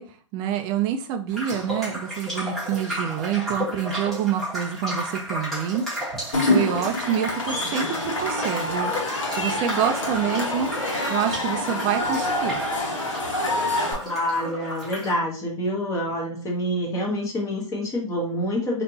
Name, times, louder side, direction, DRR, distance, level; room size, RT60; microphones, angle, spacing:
voice 1, 0.0-5.8 6.4-8.9 9.3-10.7 11.1-12.6, right 9 dB, 25° right, 6 dB, 0.4 m, -27 dB
sound 1, 1.3-15.1, equal, ahead, 1.4 m, -33 dB
Cheering / Crowd, 6.3-13.9, left 2 dB, 75° left, 1.4 m, -26 dB
voice 2, 14.0-18.8, equal, 20° left, -1 dB, 1.3 m, -27 dB
3.3 x 2.9 x 2.8 m, 0.42 s
hypercardioid pair, 125°, 17 cm